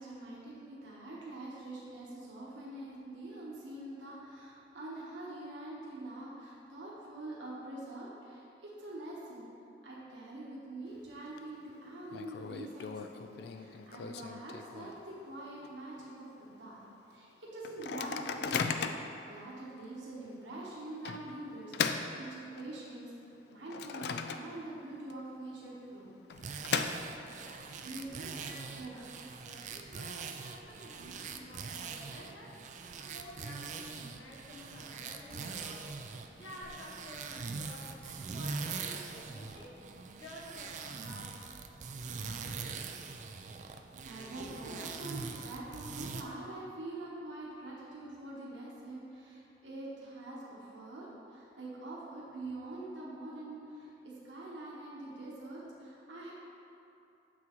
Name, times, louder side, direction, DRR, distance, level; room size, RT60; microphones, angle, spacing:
voice 1, 0.0-9.5 9.8-16.8 17.1-26.1 26.4-26.5 27.8-28.3 28.7-29.0 30.9-31.1 43.9-56.3, right 2 dB, 85° right, -6 dB, 1.1 m, -45 dB
Microwave oven, 10.9-11.4 11.7-11.8 12.1-15.2 15.6-15.7 16.0-16.3 16.8-16.9 17.6-19.2 19.8-19.9 21.1-22.9 23.3-24.8 25.1-25.2 26.1-27.5, left 6 dB, 60° left, 0.3 m, -37 dB
sound 1, 26.3-46.2, right 5 dB, 40° right, 0.3 m, -43 dB
voice 2, 27.1-28.0 28.4-29.1 29.4-32.6 33.0-36.0 36.4-39.8 40.1-41.7, left 1 dB, 85° left, -4 dB, 1.2 m, -51 dB
7.4 x 6.1 x 3.0 m, 2.8 s
head